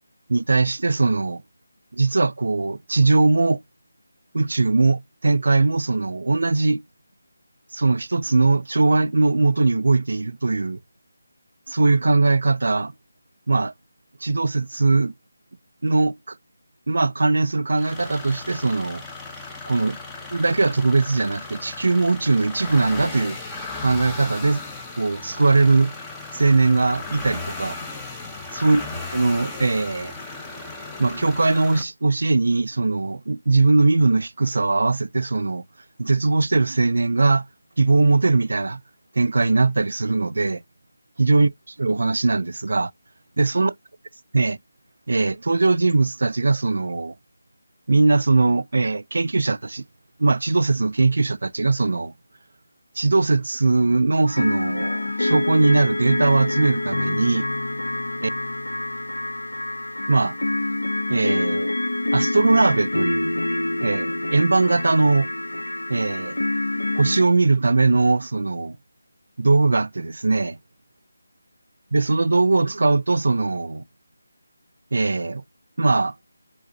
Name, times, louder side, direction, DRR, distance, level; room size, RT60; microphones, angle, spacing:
voice 1, 0.3-1.4 1.9-3.6 4.3-6.8 7.7-10.8 11.7-12.9 13.5-13.7 14.2-15.1 15.8-16.4 16.9-19.0 19.7-20.0 20.3-23.4 23.8-24.6 25.0-25.9 26.3-27.8 28.5-28.9 29.1-30.1 31.0-35.6 36.0-37.4 37.8-38.8 39.2-40.6 41.2-41.5 41.8-42.9 43.4-43.7 44.3-44.6 45.1-47.1 47.9-49.8 50.2-52.1 53.0-57.5 58.2-58.3 60.1-60.4 61.1-61.7 62.1-63.3 63.8-65.3 65.9-66.4 67.0-68.8 69.4-70.6 71.9-73.8 74.9-75.4 75.8-76.1, right 3 dB, 65° right, 0.3 m, -20 dB
sound 1, 17.7-31.8, left 3 dB, 10° left, 0.6 m, -36 dB
sound 2, 54.3-67.2, left 2 dB, 90° left, 0.5 m, -26 dB
4.8 x 3.5 x 2.7 m
figure-of-eight pair, 165°, 0 cm